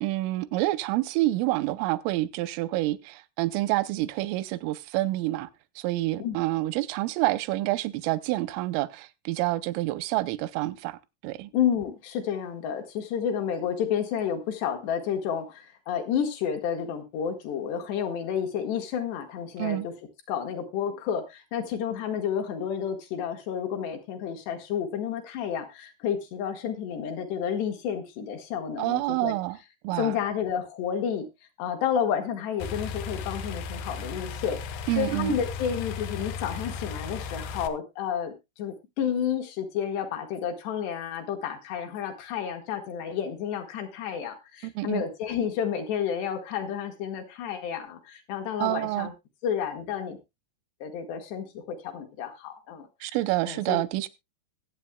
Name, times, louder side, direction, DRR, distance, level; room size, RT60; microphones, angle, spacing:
voice 1, 0.0-5.5 5.8-11.0 11.2-11.5 19.6-19.9 28.8-29.6 29.8-30.2 34.9-35.4 44.6-45.0 48.6-49.1 53.0-54.1, right 18 dB, 90° right, 3.3 m, -28 dB
voice 2, 11.5-19.9 20.3-29.3 30.0-31.3 31.6-34.6 35.0-49.1 49.4-50.2 50.8-52.9 53.4-53.8, left 8 dB, 65° left, 3.3 m, -30 dB
sound 1, 32.6-37.7, left 5 dB, 90° left, 2.1 m, -35 dB
22.0 x 8.1 x 2.2 m
omnidirectional pair, 5.6 m